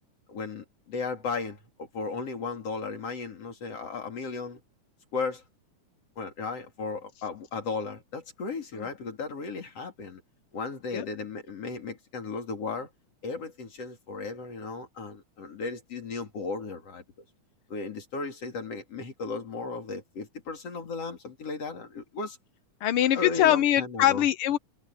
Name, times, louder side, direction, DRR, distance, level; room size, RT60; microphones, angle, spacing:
voice 1, 0.3-4.6 5.1-5.4 6.2-10.2 10.5-12.9 13.2-17.0 17.7-22.4 23.1-24.3, left 4 dB, 50° left, 4.0 m, -35 dB
voice 2, 22.8-24.6, left 12 dB, 90° left, 1.2 m, -23 dB
omnidirectional pair, 3.7 m